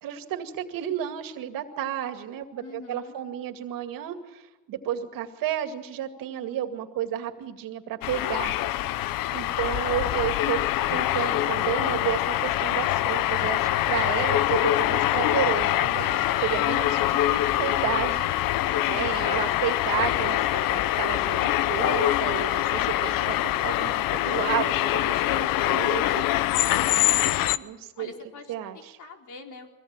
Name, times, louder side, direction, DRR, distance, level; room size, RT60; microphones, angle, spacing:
voice 1, 0.0-8.5 9.3-10.6 10.9-18.6 18.9-26.3 27.6-28.1 28.5-29.0, right 11 dB, 75° right, 7 dB, 2.3 m, -32 dB
voice 2, 2.6-3.2 9.4-9.8 18.6-19.3 27.9-29.7, left 5 dB, 60° left, 3 dB, 4.2 m, -45 dB
sound 1, 8.0-27.6, left 14 dB, 75° left, 0.8 m, -24 dB
24.0 x 17.5 x 9.0 m, 1.1 s
cardioid pair, 105°, 34 cm